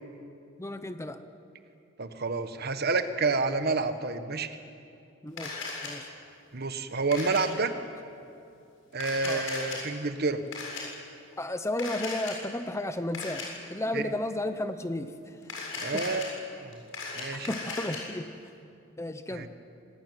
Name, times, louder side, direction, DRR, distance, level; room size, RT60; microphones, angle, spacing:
voice 1, 0.6-1.2 5.2-6.1 9.2-9.5 11.4-15.4 15.9-16.0 17.3-18.3 19.0-19.5, left 1 dB, 15° left, 10 dB, 0.9 m, -33 dB
voice 2, 2.0-4.6 6.5-7.7 8.9-10.4 13.9-14.0 15.8-16.3 16.6-16.8 17.1-17.5 19.3-19.5, right 3 dB, 50° right, 9 dB, 1.4 m, -29 dB
Camera, 5.4-5.9 7.1-7.4 8.9-9.8 10.5-10.8 11.8-12.3 13.1-13.4 15.4-16.3 16.7-18.0, left 4 dB, 75° left, 7.5 m, -36 dB
26.5 x 18.0 x 9.3 m, 2.6 s
head